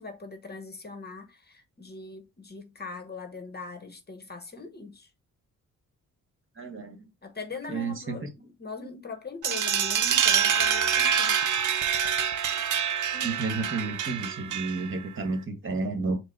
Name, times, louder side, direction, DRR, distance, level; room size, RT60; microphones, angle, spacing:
voice 1, 0.0-5.1 7.2-11.4 13.1-13.4, left 4 dB, 30° left, 0.9 m, -41 dB
voice 2, 6.6-7.0 7.7-8.3 13.2-16.2, right 3 dB, 40° right, 1.4 m, -31 dB
sound 1, 9.4-15.0, right 8 dB, 65° right, 0.7 m, -26 dB
4.7 x 2.1 x 4.4 m
cardioid pair, 85°, 33 cm